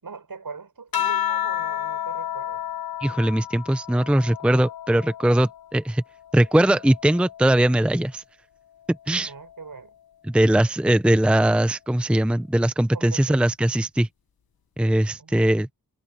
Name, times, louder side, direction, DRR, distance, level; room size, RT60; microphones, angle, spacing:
voice 1, 0.0-2.6 9.2-9.9 12.9-13.7 15.2-15.6, right 5 dB, 65° right, 4.4 m, -41 dB
sound 1, 0.9-5.7 6.2-7.9 9.1-9.6, left 11 dB, 70° left, 1.1 m, -31 dB
voice 2, 3.0-6.0 6.3-8.2 9.1-9.3 10.3-14.1 14.8-15.7, right 1 dB, 5° right, 0.7 m, -20 dB
wide cardioid pair, 70°, 38 cm